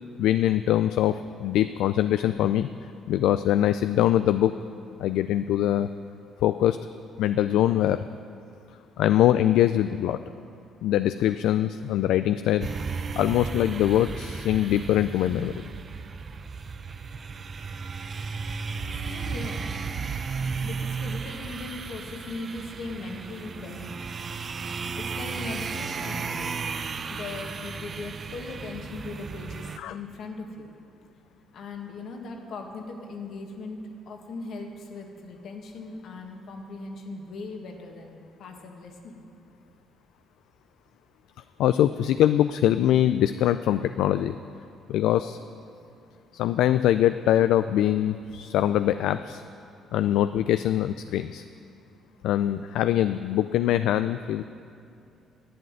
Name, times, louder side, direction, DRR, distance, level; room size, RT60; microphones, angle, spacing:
voice 1, 0.2-2.7 3.1-4.5 5.0-5.9 6.4-6.8 7.2-8.1 9.0-10.2 10.8-12.7 13.2-15.6 29.8-29.9 41.6-44.3 44.9-45.4 46.3-49.4 49.9-51.4 52.2-54.4, left 12 dB, 85° left, 11 dB, 0.3 m, -23 dB
sound 1, 12.6-29.8, right 5 dB, 40° right, 0.6 m, -34 dB
voice 2, 19.0-19.6 20.6-24.0 24.9-26.6 27.1-30.7 31.5-33.8 34.0-39.3, left 3 dB, 65° left, 3 dB, 1.8 m, -39 dB
11.0 x 7.8 x 9.1 m, 2.6 s
cardioid pair, 90°, 0 cm